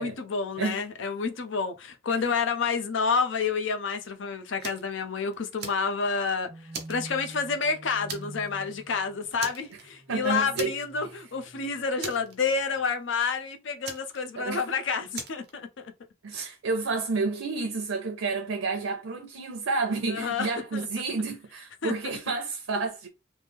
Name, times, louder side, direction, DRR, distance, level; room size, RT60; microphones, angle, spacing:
voice 1, 0.0-6.5 6.9-15.9 20.1-20.5 20.7-20.8 21.8-21.9, left 5 dB, 70° left, 0.6 m, -29 dB
Fire, 4.6-4.9 5.3-6.3 6.7-7.6 8.1-8.5 8.8-8.9 9.4-10.1 10.5-11.1 11.4-11.5 12.0-12.8 13.8-14.7 15.1-15.5, right 5 dB, 55° right, 0.8 m, -39 dB
sound 1, 6.5-12.7, right 1 dB, 15° right, 0.4 m, -47 dB
voice 2, 10.1-10.7 14.4-14.6 16.2-23.1, right 3 dB, 90° right, 0.6 m, -30 dB
3.1 x 2.0 x 3.4 m
head